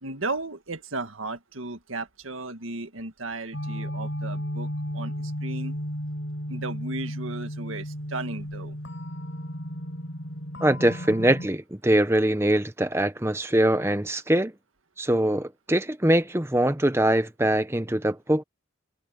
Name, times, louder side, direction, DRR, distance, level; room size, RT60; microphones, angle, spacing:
voice 1, 0.0-5.8 6.5-8.8, right 2 dB, 85° right, 1.9 m, -35 dB
sound 1, 3.5-11.5, equal, 70° left, 7.0 m, -34 dB
voice 2, 10.6-14.5 15.0-18.4, right 1 dB, 10° right, 0.8 m, -23 dB
head